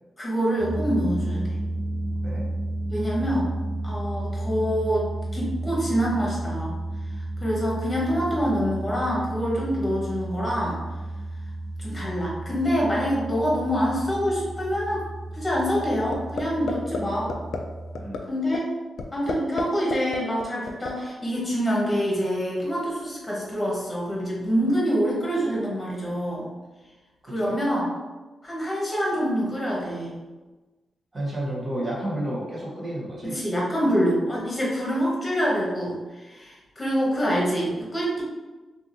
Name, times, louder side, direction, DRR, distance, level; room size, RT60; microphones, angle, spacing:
voice 1, 0.2-1.5 2.9-3.5 3.8-5.1 5.3-6.8 7.1-10.8 11.8-15.1 15.3-17.3 18.3-18.7 19.1-26.5 27.2-27.9 28.4-30.2 33.2-38.2, equal, 20° left, -5 dB, 1.1 m, -26 dB
sound 1, 0.6-18.1, right 1 dB, 55° right, 0.9 m, -32 dB
sound 2, 16.1-16.4 16.7-17.0 17.3-17.6 18.0-18.2 18.5-18.6 19.0-19.6 19.9-20.9, left 5 dB, 85° left, 0.3 m, -29 dB
voice 2, 31.1-33.4, right 1 dB, 30° right, -5 dB, 1.1 m, -31 dB
3.4 x 2.5 x 2.6 m, 1.2 s
wide cardioid pair, 115°, 0 cm